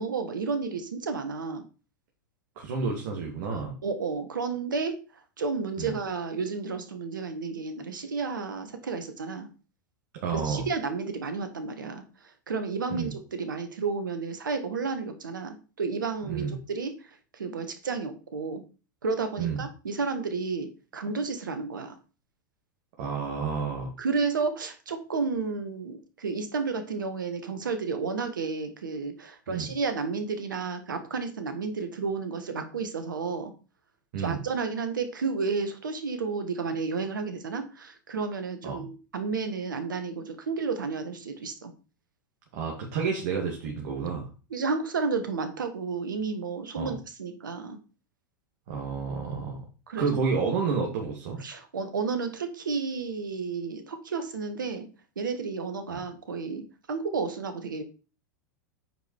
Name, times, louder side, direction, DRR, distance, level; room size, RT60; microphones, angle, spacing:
voice 1, 0.0-1.6 3.8-5.0 5.4-9.5 10.3-18.6 19.0-22.0 24.0-33.5 34.2-38.9 39.1-41.7 44.5-47.8 49.9-50.1 51.4-54.9 55.2-57.8, right 4 dB, 75° right, 8 dB, 1.7 m, -32 dB
voice 2, 2.6-3.7 5.8-5.9 10.2-10.7 12.9-13.1 16.2-16.6 19.4-19.6 23.0-23.9 29.5-29.7 34.1-34.4 38.6-38.8 42.5-44.3 46.8-47.0 48.7-49.6 50.0-51.4 55.9-56.0, right 5 dB, 55° right, 0 dB, 2.4 m, -30 dB
8.9 x 5.2 x 4.6 m, 0.33 s
figure-of-eight pair, 95°, 11 cm